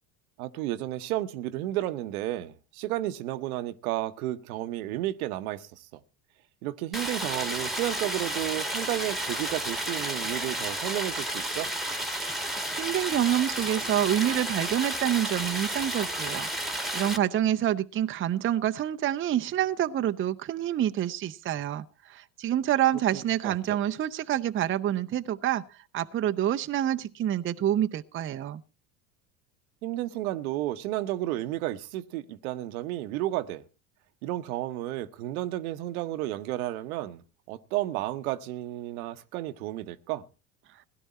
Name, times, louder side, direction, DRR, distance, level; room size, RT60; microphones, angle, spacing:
voice 1, 0.4-6.0 6.6-11.7 23.1-23.8 29.8-33.6 34.2-37.2 37.5-40.2, right 15 dB, 75° right, 1.0 m, -32 dB
Stream, 6.9-17.2, right 1 dB, ahead, 1.5 m, -32 dB
voice 2, 12.8-16.5 16.9-25.6 25.9-28.6, right 11 dB, 30° right, 0.6 m, -27 dB
17.0 x 11.0 x 4.2 m
hypercardioid pair, 80°, 43 cm